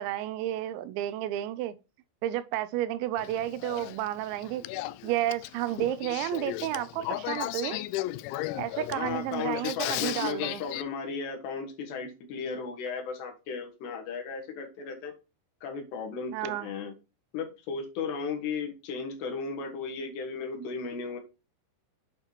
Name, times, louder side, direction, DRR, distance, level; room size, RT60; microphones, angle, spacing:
voice 1, 0.0-1.8 2.2-4.6 5.0-7.8 8.6-10.6 16.3-16.7, right 13 dB, 85° right, 2.8 m, -31 dB
Male speech man speaking / Female speech woman speaking / Conversation, 3.2-10.8, left 17 dB, 85° left, 2.8 m, -36 dB
voice 2, 8.9-15.1 15.6-16.9 17.3-21.2, left 5 dB, 70° left, 3.5 m, -35 dB
8.9 x 6.1 x 2.9 m
omnidirectional pair, 5.4 m